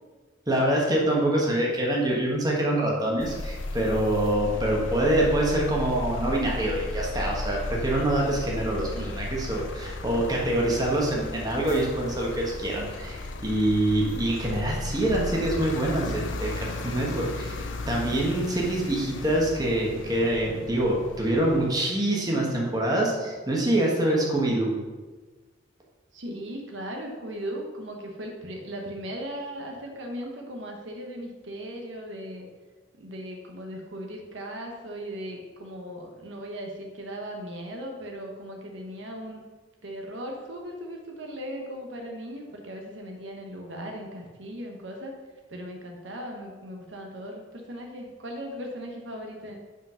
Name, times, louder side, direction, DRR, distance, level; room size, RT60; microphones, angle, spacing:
voice 1, 0.5-17.6 17.9-24.7, right 1 dB, 20° right, -3 dB, 1.3 m, -25 dB
sound 1, 3.2-21.8, left 2 dB, 80° left, 0.6 m, -35 dB
voice 2, 26.1-32.5 33.0-39.4 39.8-45.2 45.5-49.6, equal, 75° right, 1 dB, 1.1 m, -38 dB
5.6 x 5.3 x 5.5 m, 1.3 s
head